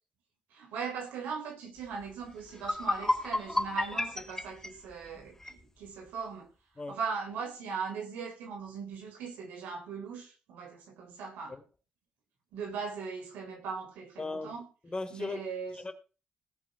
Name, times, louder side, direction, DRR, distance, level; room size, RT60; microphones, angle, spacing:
voice 1, 0.5-6.5 6.9-11.6 12.5-14.7 15.1-15.8, right 5 dB, 85° right, 3 dB, 4.3 m, -39 dB
sound 1, 2.1-2.2 2.5-5.6, left 1 dB, 15° left, 2.2 m, -32 dB
voice 2, 14.2-14.5 14.8-15.4 15.7-15.9, left 3 dB, 35° left, 7 dB, 3.3 m, -37 dB
17.5 x 6.3 x 6.3 m, 0.35 s
supercardioid pair, 50°, 3 cm